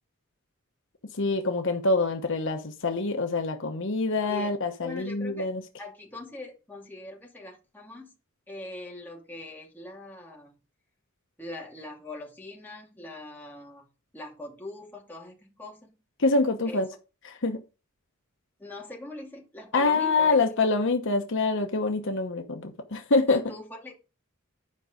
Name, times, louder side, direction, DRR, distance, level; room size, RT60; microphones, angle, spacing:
voice 1, 1.1-5.6 16.2-16.9 17.2-17.6 19.7-23.4, left 3 dB, 60° left, 1.0 m, -25 dB
voice 2, 4.8-5.5 5.8-8.1 8.5-10.5 11.4-13.9 14.1-15.9 16.7-16.8 18.6-20.4 23.3-23.9, left 2 dB, 10° left, 2.6 m, -41 dB
10.5 x 5.3 x 5.1 m
head